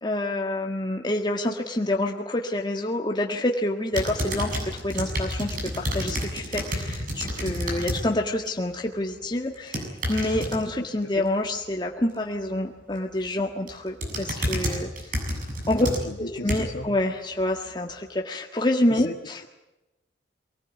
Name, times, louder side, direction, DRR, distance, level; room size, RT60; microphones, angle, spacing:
voice 1, 0.0-15.1 15.7-15.9 16.2-19.4, left 1 dB, 25° left, 0 dB, 1.7 m, -27 dB
sound 1, 3.9-8.0 8.4-8.8 9.5-10.6 13.0-13.3 13.7-16.8 17.4-17.5, equal, 50° right, 7.5 m, -30 dB
voice 2, 15.8-16.8 18.9-19.1, left 2 dB, 85° left, 1 dB, 1.5 m, -35 dB
24.5 x 19.0 x 9.3 m, 0.99 s
head